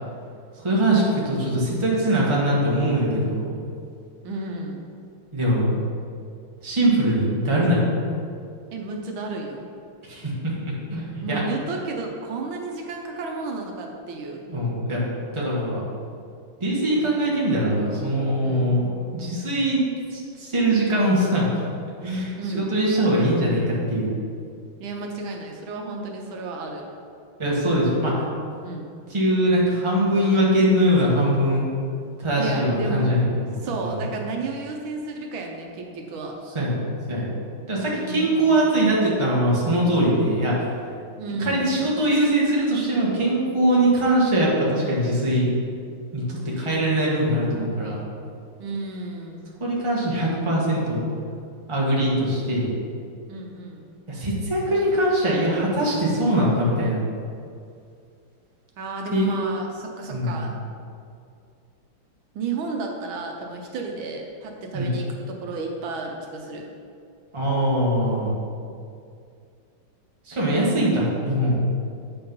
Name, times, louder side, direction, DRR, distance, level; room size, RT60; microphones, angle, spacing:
voice 1, 0.6-3.5 5.3-5.7 6.6-7.8 10.1-11.4 14.5-15.0 15.3-15.9 16.6-18.9 19.1-19.8 20.1-21.6 22.0-22.3 22.7-24.1 27.4-28.2 29.1-31.7 32.2-33.9 36.5-36.8 37.1-37.3 37.7-40.7 41.4-45.5 46.1-48.0 49.6-51.0 51.7-52.8 54.1-57.0 59.1-59.3 60.1-60.4 64.7-64.9 67.3-68.4 70.3-71.6, right 1 dB, 15° right, -5 dB, 1.4 m, -22 dB
voice 2, 4.2-4.8 8.7-9.7 11.2-14.4 18.4-18.8 22.4-22.7 24.8-26.9 28.6-28.9 32.4-33.3 33.6-36.3 37.9-38.6 41.2-41.8 48.6-49.5 53.3-53.8 58.8-60.6 62.3-66.7, right 3 dB, 80° right, 1 dB, 1.6 m, -32 dB
8.5 x 4.3 x 5.4 m, 2.4 s
omnidirectional pair, 2.2 m